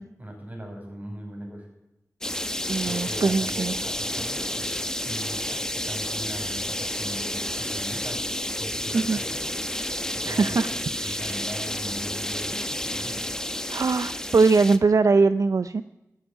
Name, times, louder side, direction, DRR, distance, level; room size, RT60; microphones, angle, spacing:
voice 1, 0.2-1.7 2.9-4.8 5.0-8.3 8.6-9.4 10.1-10.6 11.0-13.2, equal, 25° right, 1 dB, 5.6 m, -39 dB
sound 1, 2.2-14.8, left 1 dB, 10° left, 0.9 m, -30 dB
voice 2, 2.7-3.8 8.9-9.2 10.2-10.7 11.0-11.4 13.7-15.8, right 4 dB, 65° right, 12 dB, 0.5 m, -21 dB
14.0 x 9.3 x 8.6 m, 0.92 s
wide cardioid pair, 55°, 6 cm